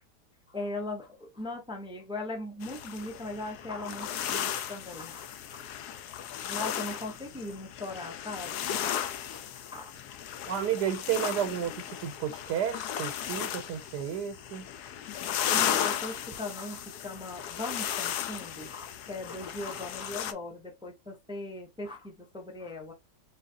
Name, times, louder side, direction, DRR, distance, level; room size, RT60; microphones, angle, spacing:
voice 1, 0.5-5.7 6.5-8.6 9.0-10.2 15.5-22.9, left 2 dB, 5° right, 0.4 m, -39 dB
sound 1, 2.6-20.3, left 10 dB, 75° left, 1.1 m, -35 dB
voice 2, 10.5-11.7 12.0-14.7, right 9 dB, 80° right, 1.3 m, -31 dB
3.9 x 3.5 x 2.6 m
omnidirectional pair, 1.8 m